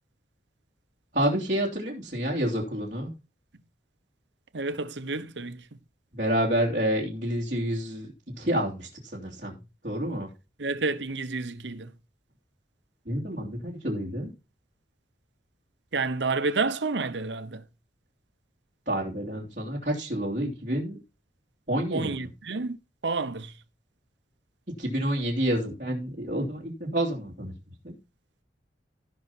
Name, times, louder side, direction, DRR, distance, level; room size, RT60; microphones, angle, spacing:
voice 1, 1.1-3.1 6.1-9.6 9.8-10.3 13.0-14.3 18.9-21.0 21.7-22.3 24.8-27.5 27.8-28.0, right 1 dB, 45° right, 2.8 m, -29 dB
voice 2, 4.5-5.6 10.6-11.9 15.9-17.6 21.9-22.8 23.0-23.5, right 3 dB, 90° right, 0.9 m, -29 dB
16.0 x 5.7 x 4.2 m
head